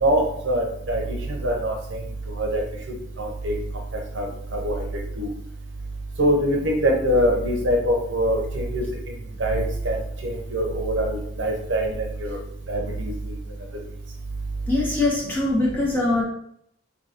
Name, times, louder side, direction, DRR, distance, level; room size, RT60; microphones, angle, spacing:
voice 1, 0.0-1.2 1.4-2.0 2.4-2.6 3.2-3.5 4.2-4.3 4.5-4.8 5.2-5.3 6.2-8.8 9.4-10.0 10.2-12.4 12.7-13.1, equal, 80° right, 0 dB, 0.8 m, -23 dB
voice 2, 14.7-16.2, left 2 dB, 10° left, -6 dB, 1.2 m, -22 dB
2.8 x 2.8 x 4.2 m, 0.71 s
head